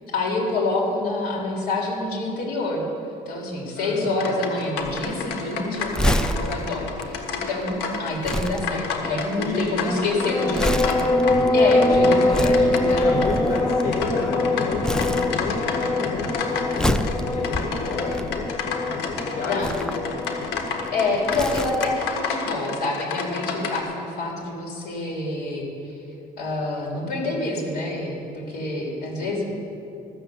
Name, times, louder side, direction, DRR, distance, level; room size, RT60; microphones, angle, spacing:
voice 1, 0.1-2.8 3.3-10.6 11.5-13.0 18.8-19.1 19.5-19.7 20.9-26.0 26.4-29.4, left 2 dB, 65° left, -1 dB, 3.7 m, -27 dB
voice 2, 3.7-4.3 9.4-11.0 11.9-18.6 19.2-20.3 29.2-29.4, left 3 dB, 50° left, -1 dB, 1.4 m, -33 dB
sound 1, 4.2-23.8, left 5 dB, 85° left, 1.4 m, -31 dB
Crumpling crinkling, 4.8-14.4 14.8-15.8 16.1-18.8 19.5-22.1 22.4-22.6, equal, 5° left, 0.5 m, -29 dB
sound 2, 10.2-22.1, left 2 dB, 25° left, 0.8 m, -24 dB
13.5 x 6.9 x 7.9 m, 2.6 s
cardioid pair, 110°, 17 cm